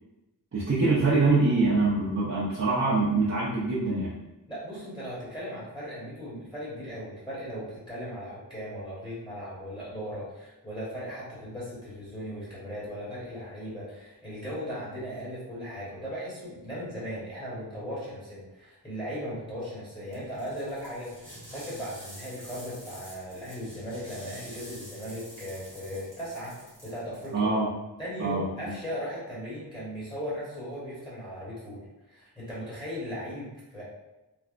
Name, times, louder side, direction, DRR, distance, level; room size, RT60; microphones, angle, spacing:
voice 1, 0.5-4.1 27.3-27.7 28.2-28.5, right 3 dB, 40° right, -8 dB, 0.7 m, -24 dB
voice 2, 4.5-27.5 28.0-33.8, equal, 10° left, -9 dB, 1.1 m, -37 dB
sound 1, 20.1-27.3, equal, 45° left, 1.4 m, -47 dB
3.3 x 2.0 x 2.5 m, 1.0 s
wide cardioid pair, 60°, 43 cm